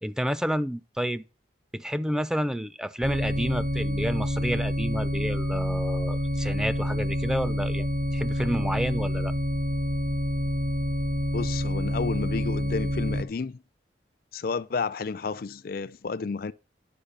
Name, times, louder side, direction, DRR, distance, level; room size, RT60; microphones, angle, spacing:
voice 1, 0.0-1.2 1.7-9.3, equal, 5° right, 0.4 m, -30 dB
sound 1, 3.0-13.2, equal, 45° right, 1.2 m, -28 dB
voice 2, 11.3-13.6 14.3-16.5, left 4 dB, 50° left, 0.4 m, -31 dB
10.5 x 4.7 x 6.6 m
head